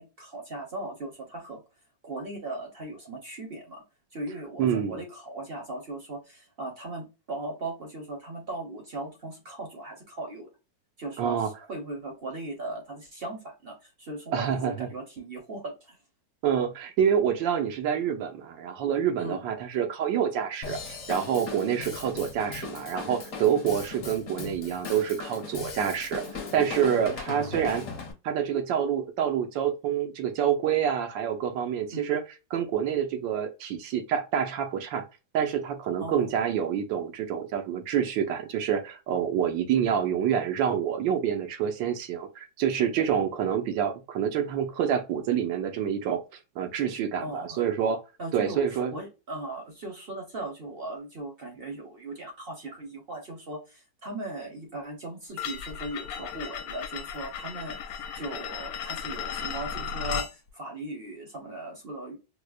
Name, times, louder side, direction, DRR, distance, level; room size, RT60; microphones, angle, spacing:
voice 1, 0.0-1.6 2.0-3.8 4.1-10.5 11.0-16.0 19.2-19.4 24.3-24.4 27.4-27.6 31.9-32.1 36.0-36.3 47.2-47.6 48.2-62.2, right 2 dB, 45° right, 0.8 m, -38 dB
voice 2, 4.6-5.0 11.2-11.5 14.3-14.9 16.4-26.2 26.5-27.9 28.2-32.2 32.5-35.0 35.3-46.2 46.6-48.0 48.3-48.9, right 8 dB, 85° right, 1.5 m, -27 dB
Drum kit / Drum, 20.6-28.1, left 4 dB, 45° left, 1.1 m, -38 dB
sound 1, 55.4-60.3, left 8 dB, 75° left, 1.2 m, -35 dB
4.7 x 2.1 x 2.3 m
omnidirectional pair, 2.0 m